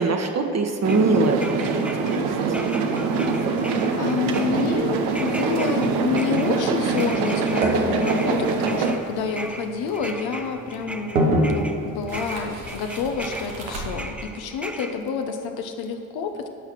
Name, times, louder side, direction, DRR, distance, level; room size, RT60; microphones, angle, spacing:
voice 1, 0.0-2.2, right 3 dB, 40° right, 4 dB, 1.3 m, -22 dB
sound 1, 0.8-2.2 2.5-11.8 12.1-14.9, right 1 dB, 5° right, 0.8 m, -38 dB
sound 2, 0.8-9.0, right 4 dB, 70° right, 0.9 m, -24 dB
voice 2, 3.6-16.5, left 5 dB, 65° left, 5 dB, 1.0 m, -28 dB
sound 3, 4.4-14.1, right 1 dB, 90° right, 1.2 m, -30 dB
11.0 x 5.7 x 6.3 m, 2.5 s
hypercardioid pair, 40°, 40 cm